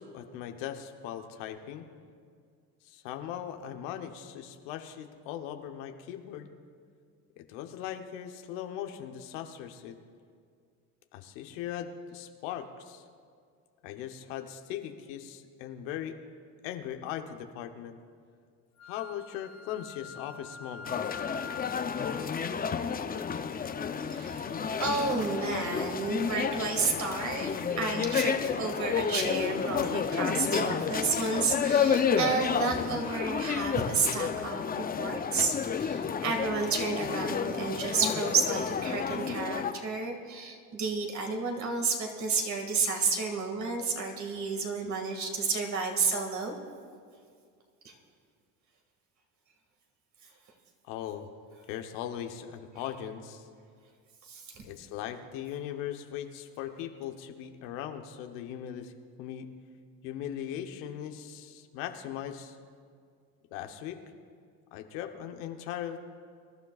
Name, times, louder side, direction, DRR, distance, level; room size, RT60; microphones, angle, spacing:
voice 1, 0.0-1.9 2.8-6.5 7.4-10.0 11.1-13.0 13.8-16.2 16.6-18.0 18.9-21.2 50.8-51.3 51.7-53.5 54.6-58.9 59.2-59.5 60.0-62.6 63.5-64.0 64.7-66.1, left 10 dB, 90° left, 6 dB, 1.0 m, -39 dB
Wind instrument woodwind instrument, 18.8-22.2, left 6 dB, 45° left, 1.2 m, -44 dB
sound 1, 20.9-39.7, left 6 dB, 25° left, 0.6 m, -31 dB
voice 2, 24.1-24.5 24.8-46.5 47.8-47.9 54.3-54.6, right 4 dB, 45° right, 3 dB, 2.1 m, -31 dB
24.0 x 12.0 x 2.4 m, 2.2 s
supercardioid pair, 105°, 38 cm